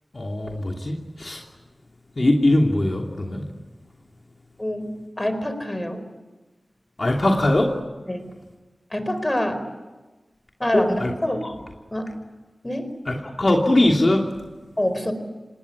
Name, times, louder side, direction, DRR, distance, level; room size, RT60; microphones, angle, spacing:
voice 1, 0.1-1.4 2.2-3.5 7.0-7.7 10.7-11.1 11.4-11.5 13.1-14.3, left 1 dB, 50° left, 1 dB, 2.9 m, -21 dB
voice 2, 4.6-4.9 5.2-6.0 8.1-8.2 8.9-9.6 10.6-11.5 11.9-12.1 12.6-12.9 14.8-15.1, left 1 dB, 25° left, 9 dB, 4.5 m, -25 dB
26.5 x 19.5 x 9.9 m, 1.2 s
cardioid pair, 50°, 0 cm